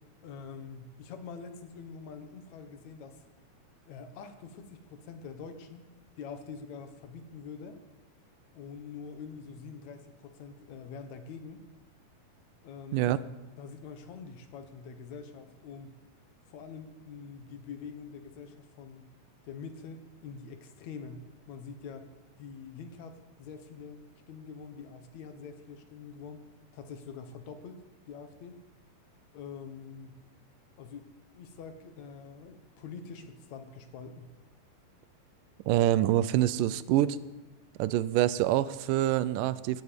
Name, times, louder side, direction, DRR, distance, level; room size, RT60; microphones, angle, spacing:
voice 1, 0.2-3.2 3.9-5.9 6.2-7.8 8.5-11.6 12.6-13.1 13.6-16.0 16.5-19.1 19.4-22.1 22.4-24.0 24.3-26.4 26.7-27.8 28.1-28.6 29.3-30.2 30.8-31.1 31.3-34.3, left 5 dB, 65° left, 8 dB, 2.4 m, -45 dB
voice 2, 35.7-37.2 37.8-39.8, right 13 dB, 85° right, 17 dB, 2.3 m, -26 dB
17.5 x 15.0 x 5.2 m, 1.1 s
omnidirectional pair, 3.8 m